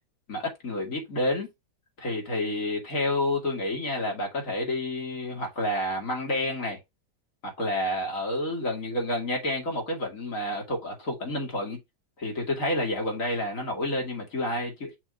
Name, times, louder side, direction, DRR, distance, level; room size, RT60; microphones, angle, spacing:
voice 1, 0.3-1.5 2.0-6.8 7.4-11.8 12.2-15.0, left 1 dB, 50° left, 2.8 m, -29 dB
6.1 x 3.0 x 5.2 m
omnidirectional pair, 1.8 m